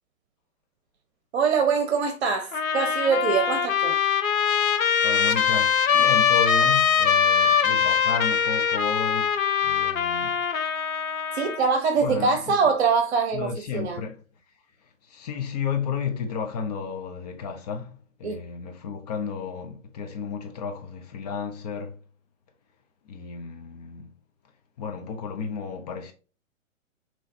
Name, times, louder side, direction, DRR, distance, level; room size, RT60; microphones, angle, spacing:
voice 1, 1.3-3.9 11.3-14.0 18.2-18.4, right 5 dB, 55° right, 1.0 m, -23 dB
Trumpet, 2.5-11.7, left 7 dB, 85° left, 0.8 m, -22 dB
voice 2, 5.0-9.3 9.6-10.4 12.0-12.5 13.3-14.1 15.0-22.0 23.1-24.1 24.8-26.1, left 6 dB, 30° left, 0.5 m, -32 dB
5.7 x 3.0 x 2.6 m
hypercardioid pair, 130°, 40 cm